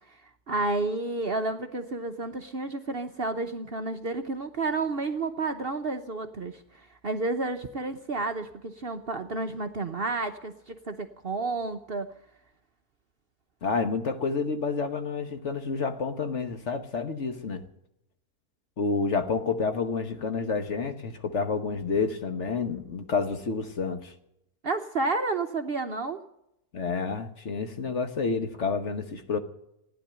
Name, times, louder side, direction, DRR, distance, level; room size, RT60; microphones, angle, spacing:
voice 1, 0.5-12.1 24.6-26.2, right 3 dB, 45° right, 6 dB, 0.9 m, -31 dB
voice 2, 13.6-17.6 18.8-24.1 26.7-29.4, left 4 dB, 50° left, 7 dB, 1.4 m, -29 dB
15.5 x 10.0 x 8.7 m, 0.82 s
omnidirectional pair, 1.6 m